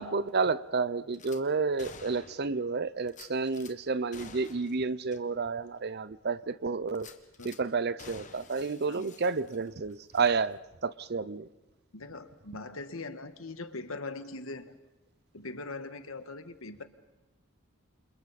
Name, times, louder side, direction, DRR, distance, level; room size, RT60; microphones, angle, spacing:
voice 1, 0.0-7.1 7.4-11.5, right 4 dB, 50° right, 0.7 m, -30 dB
Gunshot gunfire / Glass, 1.1-1.4 1.8-2.6 3.1-3.7 4.1-4.8 5.1-5.2 5.7-5.8 6.9-7.6 8.0-9.8 10.1-10.3, left 5 dB, 40° left, 1.6 m, -50 dB
voice 2, 11.9-14.7 15.3-16.8, left 3 dB, 90° left, 1.6 m, -41 dB
30.0 x 27.0 x 4.2 m
head